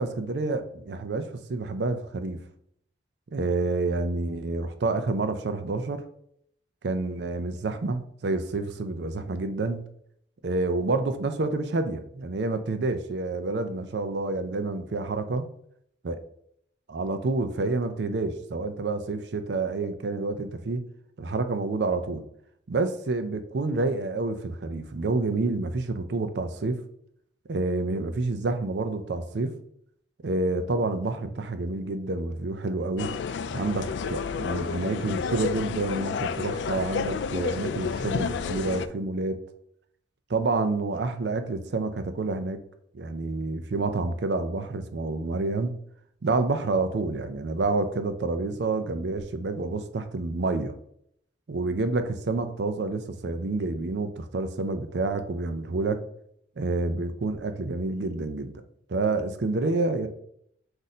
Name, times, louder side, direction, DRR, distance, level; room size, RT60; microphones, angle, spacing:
voice 1, 0.0-2.4 3.3-6.0 6.8-9.8 10.4-15.5 16.0-16.2 16.9-20.9 21.2-22.2 22.7-26.8 27.5-29.5 30.2-33.1 33.5-39.4 40.3-42.6 42.9-45.8 46.2-50.7 51.5-56.0 56.6-58.6 58.9-60.1, right 3 dB, 70° right, 9 dB, 0.5 m, -28 dB
sound 1, 33.0-38.9, left 5 dB, 75° left, 0.3 m, -30 dB
4.1 x 2.6 x 4.8 m, 0.69 s
head